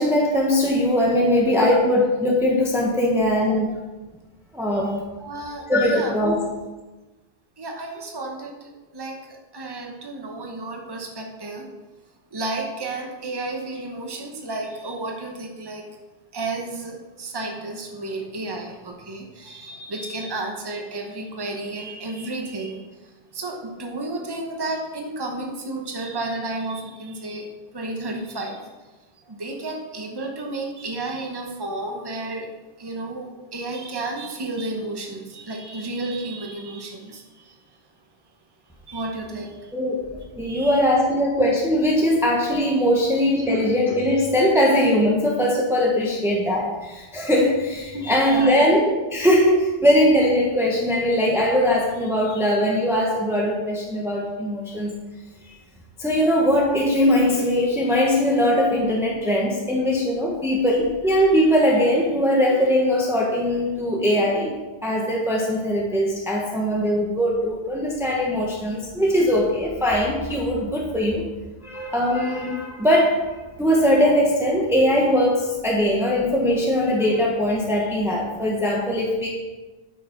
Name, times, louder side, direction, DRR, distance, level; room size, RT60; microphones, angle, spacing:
voice 1, 0.0-3.8 4.5-4.9 5.7-6.4 39.7-48.8 49.1-54.9 55.5-55.6 56.0-64.5 64.8-71.3 71.6-79.3, equal, 5° right, -2 dB, 1.1 m, -20 dB
voice 2, 5.2-6.2 7.6-11.7 12.3-15.8 16.3-28.7 29.2-32.5 32.8-37.6 38.9-39.7 40.4-40.8 43.4-43.5 47.9-48.5, right 2 dB, 25° right, 1 dB, 1.0 m, -32 dB
9.1 x 6.5 x 4.5 m, 1.2 s
omnidirectional pair, 1.0 m